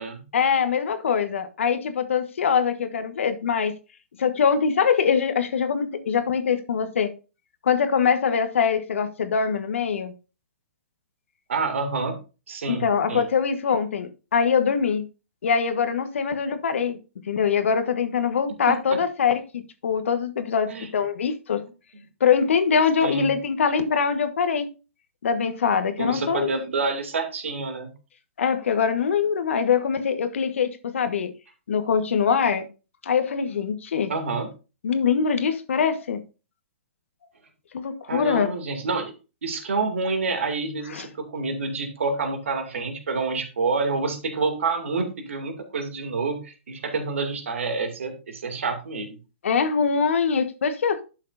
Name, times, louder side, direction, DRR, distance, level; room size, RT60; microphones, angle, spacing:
voice 1, 0.3-3.7 4.2-7.1 7.6-10.1 12.7-15.0 15.4-17.0 17.3-21.6 22.2-24.7 25.2-26.5 28.4-31.3 31.7-32.7 33.0-34.1 34.8-36.2 37.7-38.5 40.9-41.0 49.4-51.0, left 6 dB, 70° left, 1.3 m, -23 dB
voice 2, 11.5-12.2 12.5-13.2 18.7-19.0 20.7-20.9 23.0-23.4 26.0-27.9 34.1-34.5 38.1-39.1 39.4-49.2, right 4 dB, 75° right, 2.4 m, -28 dB
11.0 x 6.6 x 2.6 m
hypercardioid pair, 130°, 7 cm